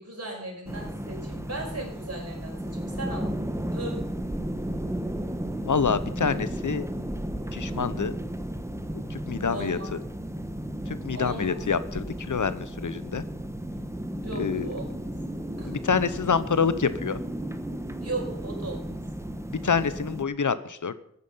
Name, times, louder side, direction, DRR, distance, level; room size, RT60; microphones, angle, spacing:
voice 1, 0.0-3.4 3.7-4.0 9.4-9.9 11.1-11.5 14.2-15.1 15.6-15.8 18.0-19.0, right 2 dB, 50° right, -1 dB, 5.4 m, -37 dB
sound 1, 0.7-20.2, right 1 dB, 10° right, 1.1 m, -34 dB
voice 2, 5.6-6.9 7.5-8.1 9.1-9.8 10.9-13.2 14.4-14.7 15.7-17.2 19.6-21.0, left 6 dB, 70° left, 14 dB, 0.8 m, -27 dB
14.5 x 9.5 x 5.6 m, 0.73 s
wide cardioid pair, 75°, 31 cm